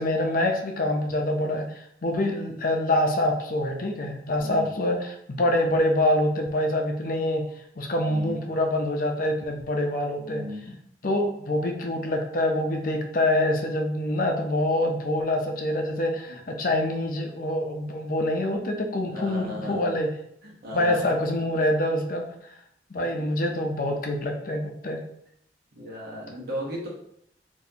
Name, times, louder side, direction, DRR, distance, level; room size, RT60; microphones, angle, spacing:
voice 1, 0.0-1.6 2.0-7.4 7.8-10.8 11.0-20.1 20.7-22.2 22.9-25.0, left 1 dB, 50° left, 2 dB, 0.5 m, -25 dB
voice 2, 4.4-4.7 8.1-8.4 10.2-10.6 16.3-16.4 19.1-19.8 20.4-21.2 23.0-23.1 25.7-26.9, equal, 55° right, -4 dB, 1.0 m, -36 dB
4.1 x 2.6 x 2.7 m, 0.71 s
head